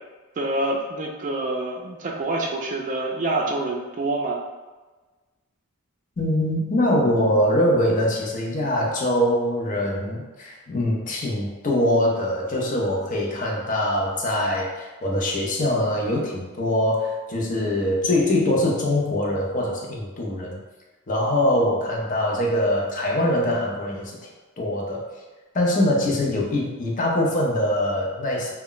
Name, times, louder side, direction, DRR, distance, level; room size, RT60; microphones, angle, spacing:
voice 1, 0.4-4.4, right 2 dB, 40° right, 0 dB, 0.4 m, -26 dB
voice 2, 6.2-20.6 21.1-24.2 24.6-25.1 25.5-28.5, left 1 dB, 40° left, -2 dB, 0.5 m, -23 dB
2.2 x 2.1 x 3.8 m, 1.2 s
head